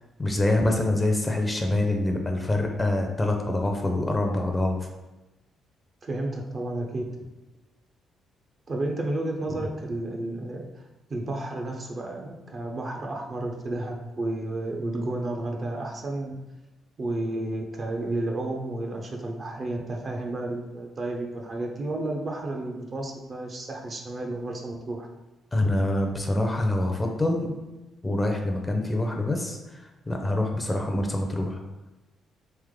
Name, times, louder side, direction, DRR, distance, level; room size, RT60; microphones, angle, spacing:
voice 1, 0.2-4.9 9.5-9.6 25.5-27.5 28.0-31.6, left 1 dB, 15° left, 3 dB, 0.6 m, -25 dB
voice 2, 6.0-7.0 8.7-10.8 11.1-16.3 17.0-25.1, right 2 dB, 40° right, 1 dB, 0.7 m, -32 dB
3.4 x 3.0 x 3.7 m, 1.1 s
cardioid pair, 90°, 0 cm